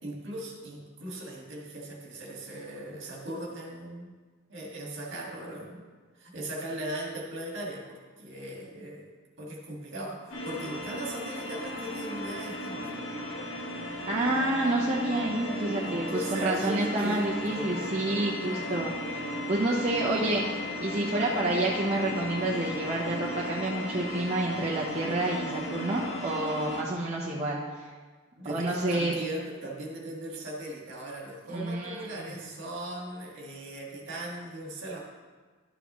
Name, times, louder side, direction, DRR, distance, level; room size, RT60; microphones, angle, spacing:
voice 1, 0.0-4.1 4.5-5.8 6.1-9.1 9.4-12.9 15.8-18.1 28.4-35.0, right 1 dB, 55° right, -2 dB, 1.9 m, -38 dB
sound 1, 10.3-26.8, left 1 dB, 65° left, 1.4 m, -35 dB
voice 2, 14.0-16.0 16.3-20.5 20.8-27.6 28.5-29.2 31.5-32.3, right 2 dB, 30° right, -6 dB, 0.9 m, -29 dB
12.0 x 6.8 x 3.1 m, 1.4 s
head